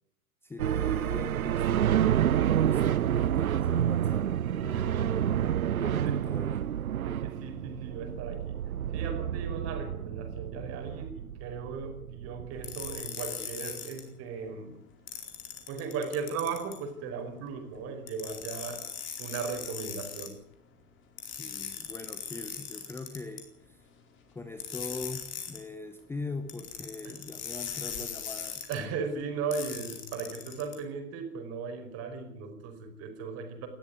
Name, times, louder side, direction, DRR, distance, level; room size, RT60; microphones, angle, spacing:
voice 1, 0.4-5.2 5.8-6.7 21.4-23.9 24.3-28.6, left 3 dB, 5° left, 9 dB, 0.9 m, -42 dB
sound 1, 0.6-13.1, right 10 dB, 70° right, 0.7 m, -29 dB
voice 2, 4.7-5.1 6.0-6.2 7.0-8.6 8.9-14.9 15.7-18.9 19.2-20.4 27.0-27.1 28.7-33.7, right 5 dB, 30° right, 6 dB, 5.1 m, -37 dB
sound 2, 12.6-14.0 15.1-16.8 18.1-20.3 21.2-23.4 24.6-25.6 26.5-28.7 29.5-30.7, left 8 dB, 25° left, 4.3 m, -39 dB
19.5 x 14.0 x 9.6 m, 0.75 s
figure-of-eight pair, 100°, 45 cm